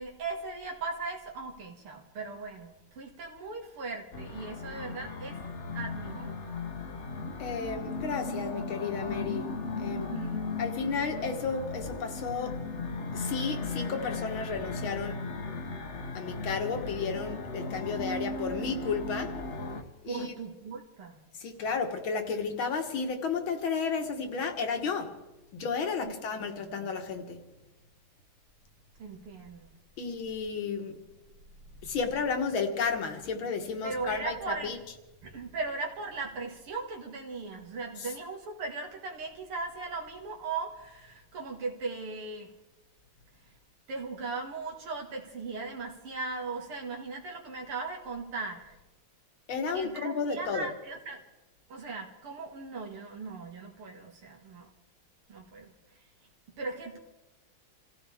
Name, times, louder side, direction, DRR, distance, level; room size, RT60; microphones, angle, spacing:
voice 1, 0.0-5.4 5.7-6.5 9.8-10.6 20.1-21.2 26.0-26.1 26.6-26.7 29.0-29.7 31.7-32.0 33.8-34.8 35.2-42.6 43.4-43.5 43.9-48.8 49.7-51.2 51.7-54.7 55.3-55.7 56.6-57.0, right 3 dB, 80° right, 1 dB, 2.7 m, -38 dB
sound 1, 4.1-19.8, left 3 dB, 45° left, 1.0 m, -37 dB
voice 2, 7.4-10.1 10.6-12.6 13.1-15.3 16.1-19.4 20.0-20.3 21.4-25.1 25.5-27.4 30.0-31.0 31.8-34.3 34.6-34.8 49.5-50.7, left 5 dB, 70° left, 5 dB, 2.0 m, -32 dB
27.5 x 15.5 x 3.5 m, 1.0 s
omnidirectional pair, 2.4 m